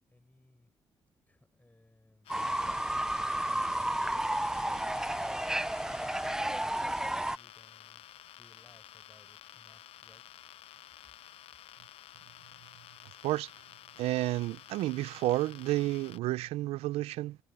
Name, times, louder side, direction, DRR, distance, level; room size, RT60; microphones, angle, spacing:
voice 1, 0.1-0.7 1.3-3.6 5.1-10.2, left 2 dB, 15° left, 6.2 m, -64 dB
sound 1, 2.2-16.2, left 12 dB, 75° left, 0.5 m, -52 dB
Fowl / Bird, 2.3-7.4, right 1 dB, 5° right, 0.5 m, -32 dB
voice 2, 14.0-17.4, right 17 dB, 85° right, 0.5 m, -31 dB
open air
supercardioid pair, 60°, 10 cm